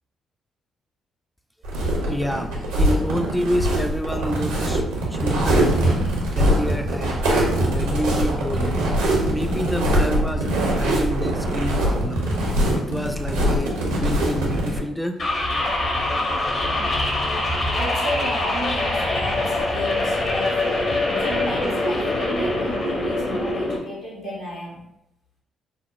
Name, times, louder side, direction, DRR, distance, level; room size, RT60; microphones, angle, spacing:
sound 1, 1.6-14.8, right 1 dB, 90° right, 0.8 m, -22 dB
voice 1, 1.8-5.7 6.3-7.3 7.6-8.8 9.3-12.3 12.7-15.2, equal, 5° left, 6 dB, 0.3 m, -28 dB
sound 2, 3.5-11.8, right 1 dB, 70° right, 0.5 m, -31 dB
sound 3, 15.2-23.8, left 2 dB, 50° left, 0.9 m, -23 dB
voice 2, 17.7-20.8 21.2-24.8, equal, 80° left, -6 dB, 1.1 m, -33 dB
5.1 x 2.1 x 2.5 m, 0.80 s
hypercardioid pair, 50°, 0 cm